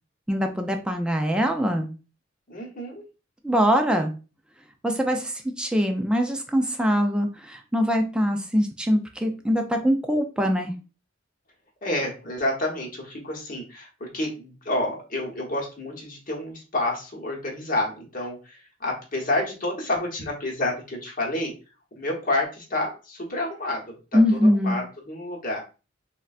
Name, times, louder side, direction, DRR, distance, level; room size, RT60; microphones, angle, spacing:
voice 1, 0.3-1.9 3.4-4.1 4.8-10.7 24.1-24.8, equal, 5° right, 3 dB, 0.3 m, -23 dB
voice 2, 2.5-3.0 11.8-21.5 21.9-25.6, left 1 dB, 45° left, -1 dB, 1.0 m, -29 dB
3.8 x 2.2 x 2.3 m, 0.33 s
head